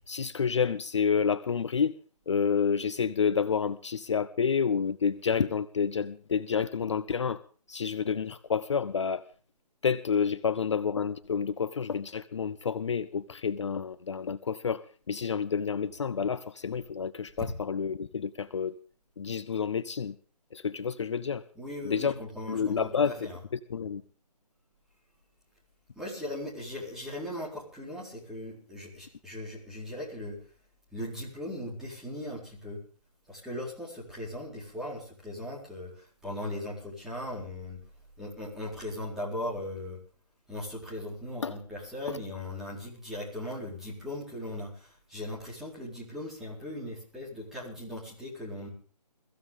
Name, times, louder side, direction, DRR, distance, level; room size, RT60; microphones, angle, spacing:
voice 1, 0.1-2.0 2.3-7.4 7.7-9.2 9.8-18.7 19.2-20.2 20.5-21.4 21.8-22.1 22.5-23.3 23.7-24.0 41.4-41.6 42.1-42.2, left 6 dB, 45° left, 14 dB, 0.6 m, -29 dB
voice 2, 21.5-23.4 26.0-30.4 30.9-32.8 33.3-37.8 38.2-40.0 40.5-48.7, left 1 dB, ahead, -6 dB, 4.2 m, -38 dB
22.5 x 15.0 x 3.7 m, 0.41 s
figure-of-eight pair, 155°, 21 cm